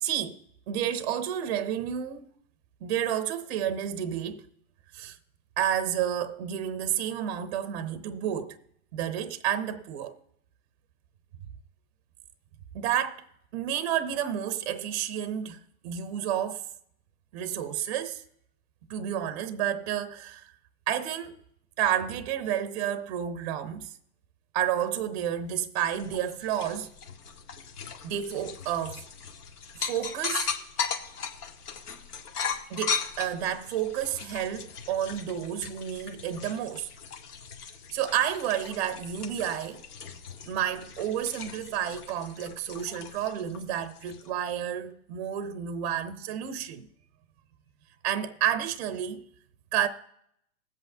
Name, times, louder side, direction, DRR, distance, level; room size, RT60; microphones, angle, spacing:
voice 1, 0.0-0.4 0.7-2.3 2.8-4.4 4.9-5.2 5.6-8.6 8.9-10.2 12.7-13.2 13.5-16.7 17.3-18.2 18.9-20.5 20.9-21.4 21.8-23.9 24.5-26.9 28.0-29.0 29.8-30.5 32.7-36.9 37.9-39.8 40.4-46.9 48.0-49.2 49.7-49.9, right 10 dB, 25° right, 0.5 m, -30 dB
sound 1, 25.9-44.3, left 6 dB, 80° left, 1.4 m, -38 dB
20.5 x 8.1 x 2.6 m
hypercardioid pair, 155°, 45 cm